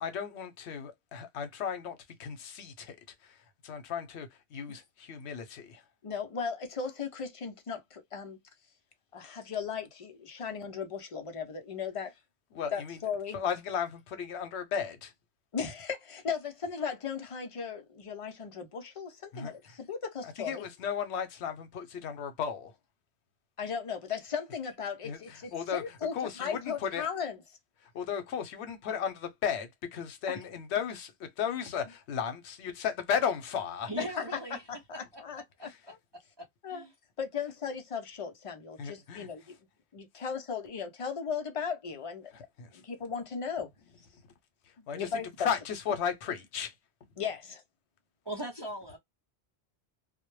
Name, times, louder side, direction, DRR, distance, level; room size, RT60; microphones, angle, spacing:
voice 1, 0.0-3.0 3.6-5.8 12.5-13.0 13.3-15.1 19.3-19.5 20.4-22.7 25.0-25.2 25.5-25.8 26.1-27.1 27.9-33.9 38.8-39.3 42.6-42.7 44.9-45.1 45.4-46.7, left 7 dB, 85° left, 0.9 m, -34 dB
voice 2, 6.0-8.4 9.1-12.1 12.7-13.4 15.5-20.7 23.6-27.4 30.3-30.4 34.0-34.2 34.5-36.0 36.6-36.8 37.2-39.6 39.9-42.3 42.7-43.7 44.8-45.5 47.2-47.6, left 6 dB, 45° left, 0.5 m, -37 dB
voice 3, 33.9-34.6 34.9-35.7 36.4-36.9 48.2-49.0, right 1 dB, 30° right, 0.5 m, -40 dB
2.1 x 2.1 x 3.0 m
omnidirectional pair, 1.1 m